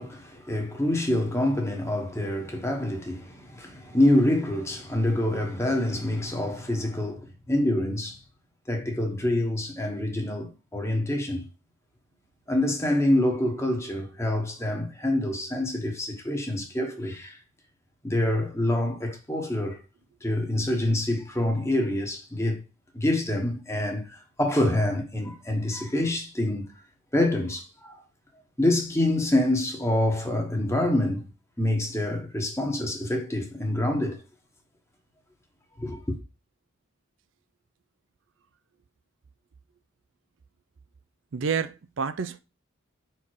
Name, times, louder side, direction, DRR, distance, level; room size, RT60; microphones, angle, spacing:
voice 1, 0.0-8.2 8.7-11.5 12.5-17.4 18.0-19.8 20.2-22.6 22.9-26.7 27.1-27.9 28.6-31.3 31.6-34.2 35.8-36.2, left 1 dB, 15° left, 1.3 m, -26 dB
voice 2, 41.3-42.4, right 6 dB, 65° right, 0.5 m, -29 dB
5.5 x 4.5 x 4.7 m
head